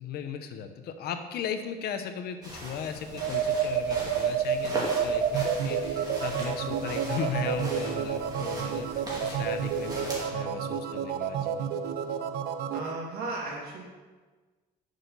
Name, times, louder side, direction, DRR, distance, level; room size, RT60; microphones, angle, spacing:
voice 1, 0.0-11.9, left 7 dB, 70° left, 8 dB, 0.8 m, -37 dB
sound 1, 2.4-10.2, right 1 dB, 20° right, 2.7 m, -40 dB
sound 2, 3.1-12.9, right 7 dB, 85° right, 0.5 m, -30 dB
voice 2, 12.7-13.8, right 2 dB, 70° right, -2 dB, 2.4 m, -35 dB
9.4 x 6.5 x 4.0 m, 1.3 s
cardioid pair, 110°, 17 cm